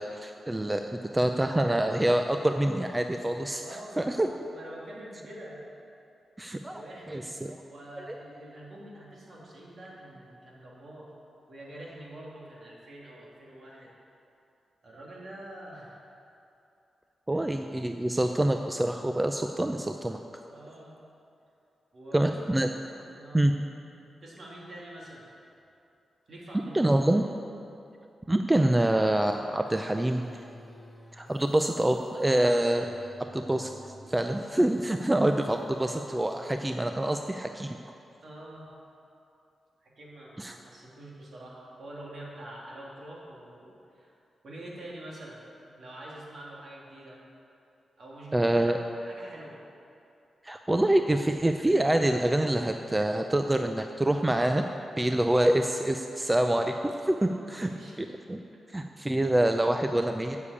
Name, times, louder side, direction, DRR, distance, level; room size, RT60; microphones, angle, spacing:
voice 1, 0.0-3.6 4.0-4.3 6.4-6.8 7.1-7.5 7.9-8.2 17.3-20.2 22.1-22.7 23.3-23.5 26.7-27.2 28.3-30.4 31.1-37.8 40.4-40.6 48.3-48.8 50.4-54.6 55.0-57.7 58.0-58.4 58.7-60.4, right 1 dB, 15° right, 5 dB, 0.5 m, -26 dB
voice 2, 3.6-5.6 6.4-7.3 7.7-11.1 11.5-13.9 14.8-16.0 17.3-17.5 20.5-21.0 21.9-22.2 23.1-23.5 24.2-25.3 26.3-26.9 38.2-38.7 39.8-44.2 44.4-47.2 48.0-48.7 49.0-49.6 57.2-58.0 58.5-58.6 59.1-59.3, right 1 dB, 60° right, -4 dB, 2.9 m, -46 dB
sound 1, 29.7-37.1, equal, 10° left, 1.2 m, -50 dB
8.5 x 7.2 x 8.4 m, 2.7 s
cardioid pair, 70°, 0 cm